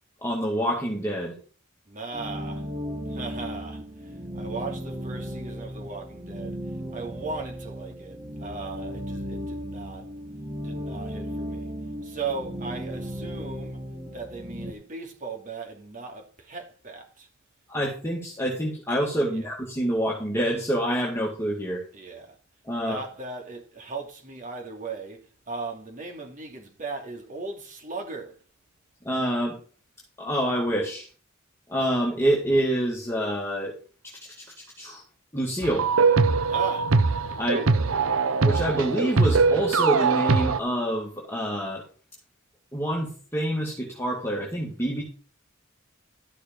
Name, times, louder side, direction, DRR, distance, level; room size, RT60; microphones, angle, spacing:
voice 1, 0.2-1.4 17.7-21.8 22.6-23.0 29.0-29.6 30.2-31.1 31.7-33.7 34.4-34.5 34.8-35.0 35.3-35.9 37.4-37.6 38.4-41.8 42.7-45.0, right 1 dB, 10° left, 2.3 m, -27 dB
voice 2, 1.9-2.7 3.1-6.6 6.9-10.1 10.6-11.7 12.0-13.8 14.1-17.3 19.3-19.5 21.9-22.4 22.8-28.4 36.5-36.9 37.4-37.7, right 4 dB, 40° right, 2.7 m, -37 dB
sound 1, 2.1-14.7, equal, 20° right, 1.4 m, -35 dB
sound 2, 35.6-40.6, right 4 dB, 80° right, 0.7 m, -22 dB
12.5 x 6.6 x 4.6 m
head